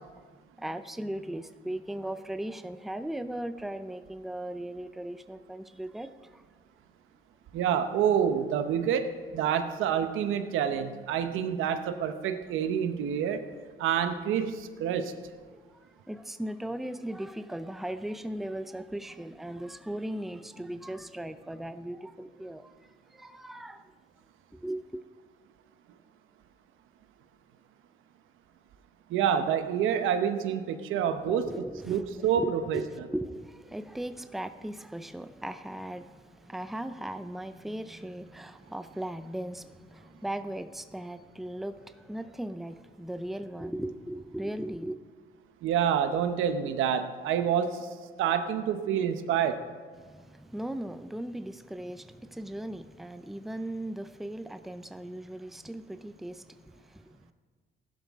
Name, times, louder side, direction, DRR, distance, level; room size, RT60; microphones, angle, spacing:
voice 1, 0.6-6.4 15.5-15.6 16.1-22.7 23.1-23.8 24.5-25.0 31.2-45.0 50.0-57.3, right 1 dB, ahead, 10 dB, 0.5 m, -38 dB
voice 2, 7.5-13.5 13.8-15.1 29.1-32.8 45.6-47.9 48.2-49.6, right 8 dB, 90° right, 9 dB, 0.9 m, -28 dB
15.5 x 11.5 x 3.6 m, 1.5 s
cardioid pair, 90°, 20 cm